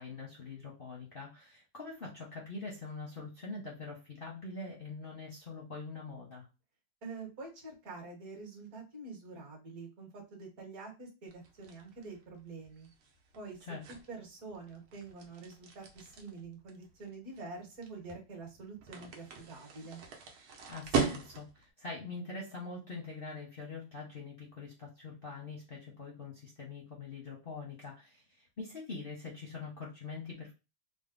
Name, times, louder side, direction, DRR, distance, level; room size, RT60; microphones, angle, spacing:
voice 1, 0.0-6.5 13.7-13.8 20.7-30.5, left 3 dB, 45° left, -2 dB, 0.7 m, -44 dB
voice 2, 7.0-12.9 13.4-20.1, right 3 dB, 50° right, 0 dB, 1.8 m, -47 dB
sound 1, 11.3-21.7, right 5 dB, 85° right, 1.7 m, -40 dB
3.9 x 2.1 x 3.7 m, 0.28 s
omnidirectional pair, 2.2 m